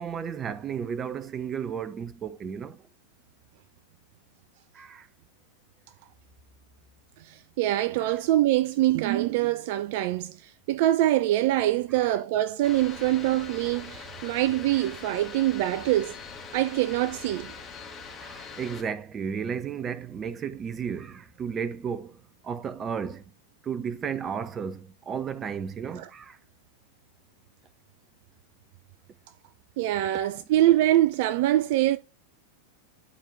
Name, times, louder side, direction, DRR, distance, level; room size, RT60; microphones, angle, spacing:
voice 1, 0.0-2.8 4.7-5.1 8.0-8.2 18.2-23.2 23.6-26.4, right 7 dB, 25° right, 0.7 m, -33 dB
voice 2, 7.2-16.2 16.5-17.5 26.0-26.1 29.8-32.0, right 14 dB, 50° right, 0.3 m, -24 dB
sound 1, 12.6-18.8, left 5 dB, 20° left, 1.8 m, -42 dB
11.5 x 4.4 x 2.5 m
figure-of-eight pair, 90°, 0 cm